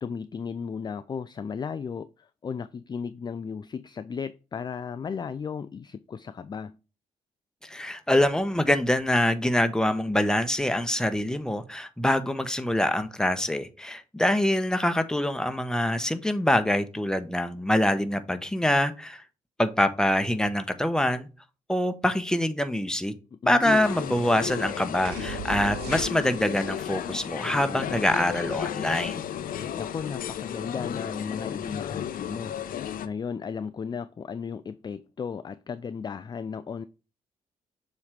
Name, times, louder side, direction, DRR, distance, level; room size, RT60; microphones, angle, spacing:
voice 1, 0.0-6.8 23.3-23.8 27.3-28.0 29.8-36.8, left 6 dB, 25° left, 0.4 m, -35 dB
voice 2, 7.6-19.2 19.6-21.3 21.7-23.1 23.5-29.2, left 1 dB, 5° left, 1.0 m, -25 dB
sound 1, 23.6-33.1, left 9 dB, 55° left, 0.7 m, -34 dB
sound 2, 25.1-26.6, right 9 dB, 70° right, 0.6 m, -37 dB
7.0 x 3.1 x 5.1 m
figure-of-eight pair, 40°, 17 cm